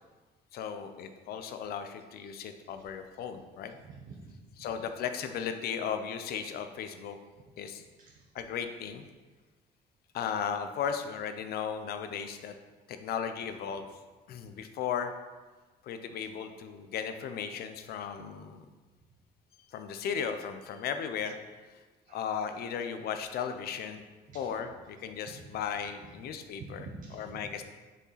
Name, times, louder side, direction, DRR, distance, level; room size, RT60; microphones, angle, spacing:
voice 1, 0.5-3.7 4.6-7.2 7.6-7.8 8.3-9.0 10.1-12.6 12.9-13.9 14.3-15.1 15.8-18.7 19.7-21.4 22.1-24.0 24.3-26.9 27.1-27.6, left 7 dB, 65° left, 8 dB, 0.7 m, -36 dB
voice 2, 3.8-4.7 8.0-8.3 22.1-22.2 24.3-24.5 25.4-25.5 26.0-26.1 26.6-27.4, right 3 dB, 50° right, -3 dB, 1.1 m, -47 dB
6.7 x 5.1 x 4.1 m, 1.3 s
cardioid pair, 110°, 17 cm